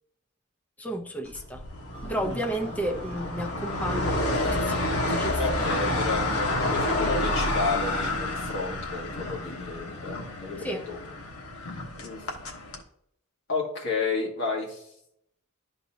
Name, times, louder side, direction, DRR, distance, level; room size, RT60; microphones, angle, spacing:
voice 1, 0.8-1.6 2.1-5.4 5.8-6.1 10.6-10.9, right 1 dB, 5° left, 2 dB, 0.6 m, -33 dB
sound 1, 1.3-12.8, left 2 dB, 80° left, 1.2 m, -29 dB
sound 2, 1.9-4.7 5.5-8.2, left 1 dB, 25° left, 1.3 m, -42 dB
voice 2, 5.4-11.0 12.0-12.2 13.5-14.9, left 4 dB, 60° left, -3 dB, 1.9 m, -32 dB
12.0 x 4.1 x 2.8 m, 0.72 s
head